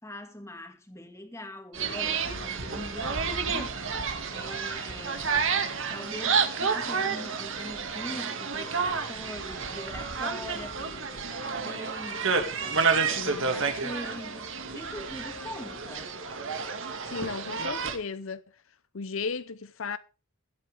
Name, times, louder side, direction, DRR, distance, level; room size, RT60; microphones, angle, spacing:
voice 1, 0.0-3.9 4.3-16.1, left 1 dB, 15° left, 2.1 m, -42 dB
sound 1, 1.7-18.0, right 5 dB, 60° right, 2.2 m, -30 dB
voice 2, 13.2-13.6 17.1-18.4 18.9-20.0, left 5 dB, 65° left, 0.7 m, -35 dB
21.0 x 8.6 x 3.6 m
head